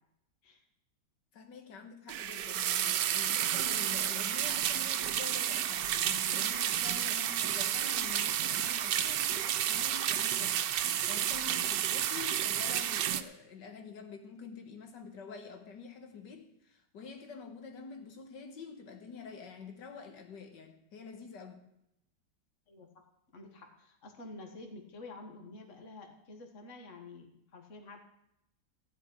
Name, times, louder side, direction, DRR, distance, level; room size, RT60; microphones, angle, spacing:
voice 1, 1.3-21.6, left 5 dB, 85° left, 2.0 m, -47 dB
sound 1, 2.1-13.2, right 11 dB, 85° right, 1.3 m, -31 dB
voice 2, 22.7-23.0 23.3-28.0, left 2 dB, 45° left, 1.9 m, -49 dB
15.5 x 5.3 x 9.7 m
omnidirectional pair, 1.8 m